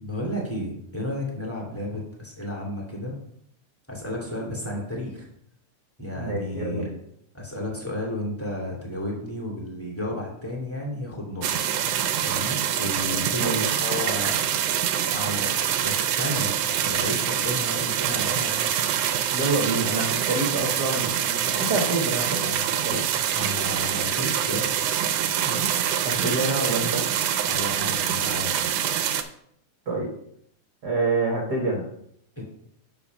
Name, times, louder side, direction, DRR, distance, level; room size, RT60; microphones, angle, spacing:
voice 1, 0.0-3.1 3.9-5.3 6.0-6.9 7.3-11.5 12.2-14.5 15.1-16.5 16.8-18.6 23.3-24.8 27.5-28.6 32.3-32.4, left 1 dB, 5° left, -3 dB, 1.6 m, -32 dB
voice 2, 6.1-7.0 13.3-13.7 19.3-23.1 25.4-25.7 26.0-27.0 29.9-30.1 30.8-31.9, right 2 dB, 55° right, -1 dB, 1.1 m, -27 dB
sound 1, 11.4-29.2, right 9 dB, 75° right, 1.6 m, -25 dB
6.5 x 5.8 x 5.2 m, 0.70 s
omnidirectional pair, 3.4 m